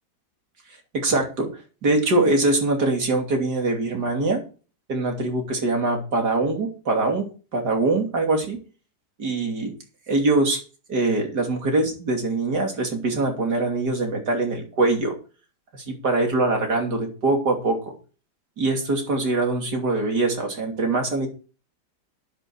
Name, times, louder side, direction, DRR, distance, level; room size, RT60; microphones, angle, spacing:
voice 1, 0.9-1.5 1.8-4.4 4.9-7.2 7.5-8.6 9.2-9.7 10.1-10.6 10.9-15.1 15.9-17.9 18.6-21.3, right 2 dB, 70° right, 3 dB, 3.4 m, -23 dB
10.5 x 10.5 x 4.7 m, 0.36 s
omnidirectional pair, 1.8 m